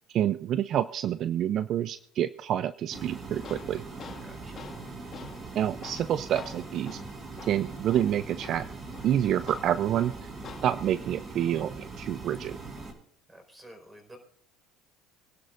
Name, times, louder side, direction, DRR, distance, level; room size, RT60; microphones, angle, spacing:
voice 1, 0.1-3.8 5.6-7.0 7.4-8.7 9.0-10.3 10.6-12.6, right 11 dB, 50° right, 14 dB, 0.5 m, -28 dB
Tools, 2.9-10.9, left 6 dB, 40° left, 1.9 m, -48 dB
sound 1, 2.9-12.9, right 3 dB, 35° right, 4.4 m, -41 dB
voice 2, 4.2-4.6 13.3-14.2, right 1 dB, 15° right, 4 dB, 4.7 m, -51 dB
25.5 x 11.5 x 2.6 m, 0.62 s
supercardioid pair, 105°, 0 cm